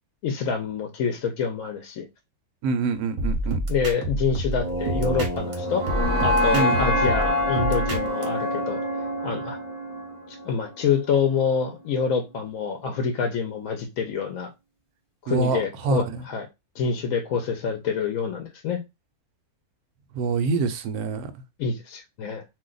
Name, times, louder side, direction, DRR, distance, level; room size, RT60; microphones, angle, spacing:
voice 1, 0.2-2.1 3.7-5.9 6.2-8.8 9.2-9.6 10.3-14.5 15.2-16.5 16.8-18.8 21.6-22.4, left 5 dB, 70° left, 0.9 m, -26 dB
voice 2, 2.6-3.6 6.5-6.8 15.3-16.2 20.1-21.3, right 4 dB, 80° right, 1.1 m, -26 dB
sound 1, 3.2-5.5 5.9-8.2, right 1 dB, 40° right, 0.7 m, -28 dB
sound 2, 4.6-10.7, left 1 dB, 30° left, 0.6 m, -26 dB
2.7 x 2.2 x 3.7 m
omnidirectional pair, 1.6 m